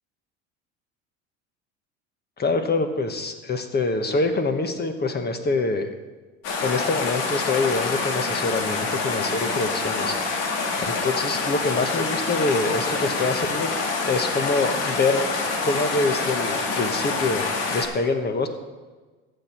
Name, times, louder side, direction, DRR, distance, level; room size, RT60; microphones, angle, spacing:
voice 1, 2.4-5.9 6.6-10.3 10.8-13.7 14.0-15.3 15.6-18.5, left 3 dB, 30° left, 7 dB, 1.3 m, -25 dB
sound 1, 6.4-17.9, left 4 dB, 70° left, 2.3 m, -26 dB
14.5 x 7.4 x 4.5 m, 1.3 s
hypercardioid pair, 85°, 34 cm